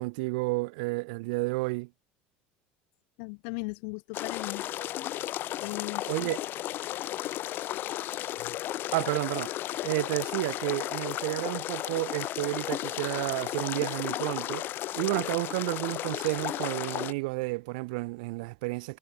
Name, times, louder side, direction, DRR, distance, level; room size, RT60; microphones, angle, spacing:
voice 1, 0.0-1.9 6.1-6.4 8.9-9.5 9.8-19.0, right 26 dB, 85° right, 2.8 m, -31 dB
voice 2, 3.2-4.7 5.6-6.3 7.7-7.8 8.4-8.6, left 40 dB or more, 75° left, 5.7 m, -38 dB
sound 1, 4.1-17.1, left 14 dB, 50° left, 5.9 m, -34 dB
supercardioid pair, 120°, 4 cm